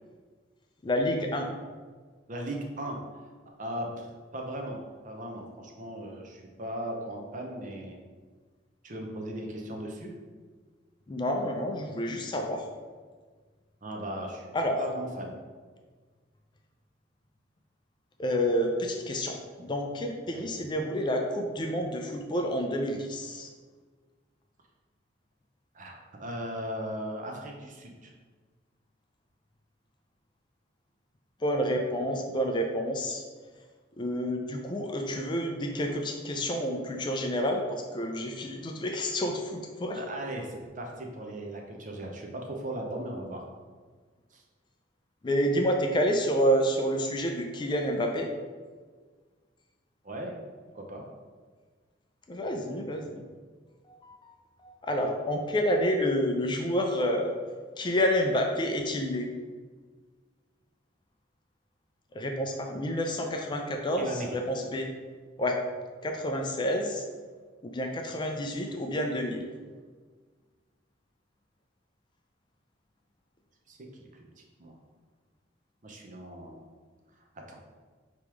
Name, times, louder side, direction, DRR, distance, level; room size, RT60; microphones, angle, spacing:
voice 1, 0.8-1.5 11.1-12.7 14.5-14.8 18.2-23.5 31.4-33.2 34.0-40.0 45.2-48.3 52.3-53.2 53.9-54.4 54.6-57.3 57.8-59.3 62.1-64.9 65.4-65.6 66.0-67.0 67.6-69.5, equal, 25° left, 3 dB, 0.4 m, -29 dB
voice 2, 2.3-3.0 3.6-4.1 4.3-4.8 5.0-8.0 8.8-10.1 13.8-14.5 14.8-15.4 20.3-20.6 25.7-28.1 40.0-43.4 44.3-44.4 50.0-50.3 50.7-51.0 64.0-64.3 73.7-74.1 74.6-74.7 75.8-76.7 77.5-77.6, right 1 dB, 45° right, 1 dB, 0.7 m, -37 dB
3.6 x 3.0 x 4.7 m, 1.5 s
head